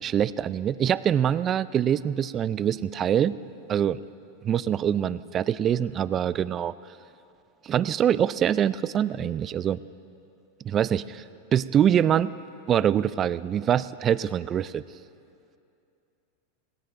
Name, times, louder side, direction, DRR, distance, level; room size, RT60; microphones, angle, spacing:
voice 1, 0.0-3.4 3.7-4.0 4.4-6.8 7.6-9.8 10.6-11.2 11.5-12.3 12.7-14.8, right 9 dB, 30° right, 16 dB, 0.4 m, -24 dB
27.0 x 19.0 x 2.6 m, 2.6 s
hypercardioid pair, 115°, 0 cm